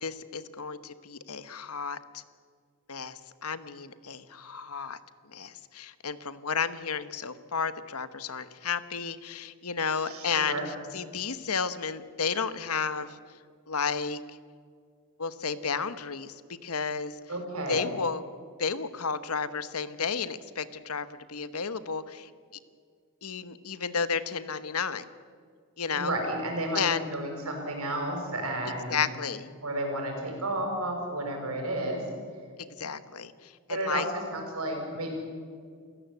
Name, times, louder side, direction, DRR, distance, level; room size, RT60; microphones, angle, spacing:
voice 1, 0.0-2.2 2.9-5.0 5.3-13.2 13.7-14.2 15.2-17.2 17.7-18.2 18.6-22.3 23.2-25.1 25.8-26.1 26.7-27.1 28.9-29.5 32.8-34.0, left 6 dB, 90° left, 13 dB, 1.2 m, -32 dB
voice 2, 10.0-10.6 17.3-17.8 25.9-29.1 29.6-32.0 33.7-35.1, right 1 dB, 85° right, 2 dB, 6.8 m, -32 dB
29.0 x 16.0 x 8.3 m, 2.1 s
head